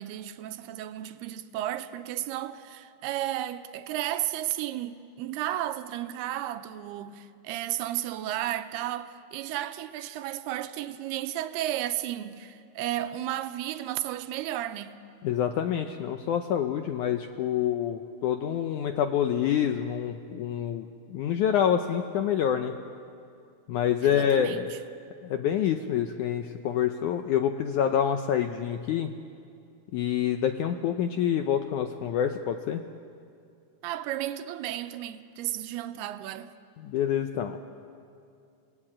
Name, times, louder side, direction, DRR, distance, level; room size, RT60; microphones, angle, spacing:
voice 1, 0.0-15.0 24.0-24.8 33.8-36.5, right 13 dB, 85° right, 2.8 m, -33 dB
voice 2, 15.2-22.7 23.7-24.7 25.2-29.1 29.9-32.8 36.8-37.6, left 9 dB, 85° left, 1.7 m, -27 dB
29.0 x 18.5 x 8.8 m
omnidirectional pair, 4.6 m